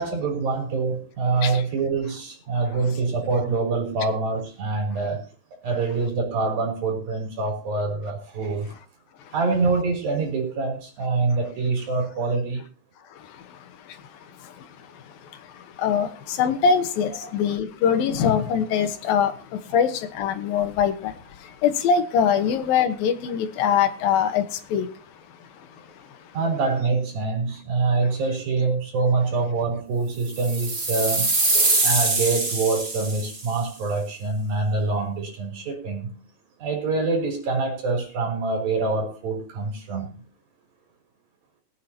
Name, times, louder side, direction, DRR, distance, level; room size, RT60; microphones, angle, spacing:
voice 1, 0.0-5.3 5.6-8.7 9.3-12.6 17.2-17.3 26.3-36.2 36.6-40.2, right 3 dB, 70° right, 5.2 m, -25 dB
voice 2, 13.1-26.4, left 7 dB, 75° left, 2.9 m, -24 dB
sound 1, 30.3-33.5, right 2 dB, 35° right, 0.8 m, -23 dB
22.5 x 9.3 x 2.9 m
omnidirectional pair, 4.3 m